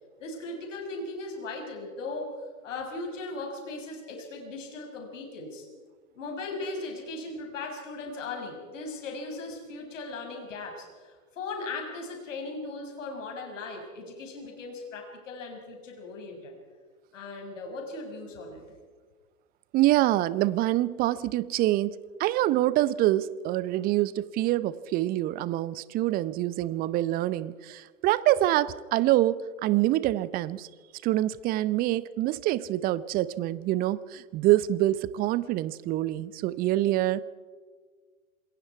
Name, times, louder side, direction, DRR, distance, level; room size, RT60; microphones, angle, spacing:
voice 1, 0.2-5.7 6.1-16.5 17.1-18.7, left 3 dB, 65° left, 2 dB, 6.6 m, -38 dB
voice 2, 19.7-30.7 31.0-37.2, right 15 dB, 20° right, 19 dB, 0.6 m, -26 dB
27.0 x 21.5 x 4.7 m, 1.5 s
figure-of-eight pair, 105°, 41 cm